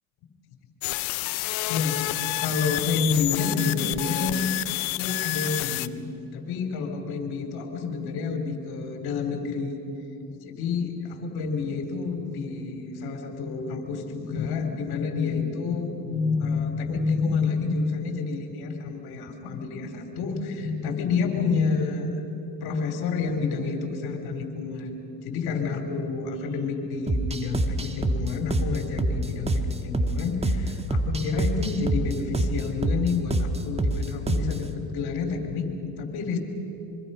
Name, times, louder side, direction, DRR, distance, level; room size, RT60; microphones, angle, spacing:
sound 1, 0.8-5.9, left 19 dB, 85° left, 0.7 m, -29 dB
voice 1, 1.7-4.6 5.0-6.1 6.3-9.8 10.4-22.1 22.6-36.4, left 4 dB, 65° left, 5 dB, 3.6 m, -29 dB
sound 2, 27.1-34.7, right 1 dB, 15° right, 1.5 m, -26 dB
25.0 x 24.0 x 5.6 m, 2.8 s
supercardioid pair, 90°, 41 cm